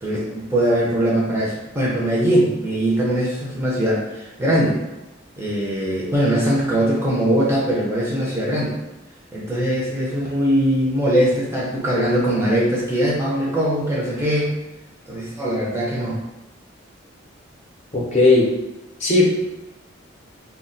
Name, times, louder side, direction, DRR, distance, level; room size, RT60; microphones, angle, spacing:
voice 1, 0.0-4.8 5.4-8.8 9.3-14.5 15.1-16.2, right 1 dB, 10° right, -5 dB, 0.4 m, -21 dB
voice 2, 17.9-18.5 19.0-19.3, left 2 dB, 35° left, -5 dB, 0.6 m, -16 dB
2.2 x 2.1 x 3.8 m, 1.0 s
head